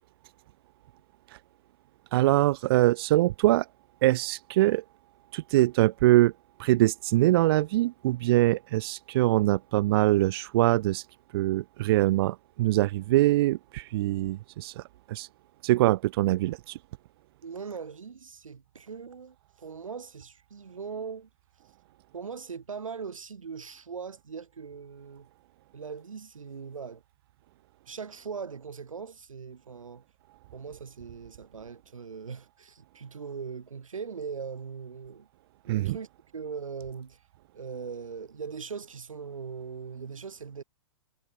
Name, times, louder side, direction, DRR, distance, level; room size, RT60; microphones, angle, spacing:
voice 1, 2.1-3.7 4.0-4.8 5.3-6.3 6.6-11.1 11.3-15.3 15.6-16.8 35.7-36.0, right 16 dB, 50° right, 0.5 m, -23 dB
voice 2, 17.4-21.3 22.1-25.3 25.7-27.0 27.9-30.0 30.5-35.3 35.6-36.1 36.3-37.2 37.5-40.6, right 6 dB, 85° right, 1.9 m, -40 dB
hypercardioid pair, 125°, 17 cm